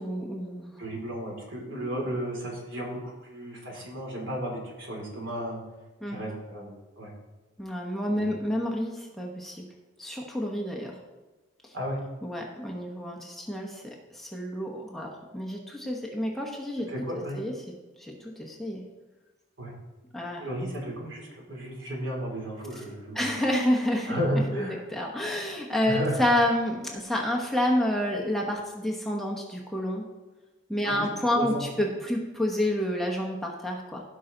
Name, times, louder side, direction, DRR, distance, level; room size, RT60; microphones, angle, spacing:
voice 1, 0.0-0.8 6.0-6.2 7.6-9.6 10.0-11.0 11.6-11.8 12.2-16.9 17.3-17.5 18.0-18.8 20.1-20.4 23.1-24.2 24.5-24.6 24.9-30.0 30.7-34.0, left 1 dB, ahead, -1 dB, 1.0 m, -29 dB
voice 2, 0.8-5.6 6.1-7.1 8.1-8.4 11.7-12.0 16.9-17.4 19.6-19.7 20.4-23.3 24.1-24.8 25.8-26.5 30.8-31.1 31.3-31.6, equal, 75° right, -2 dB, 3.2 m, -33 dB
15.5 x 5.7 x 3.9 m, 1.2 s
head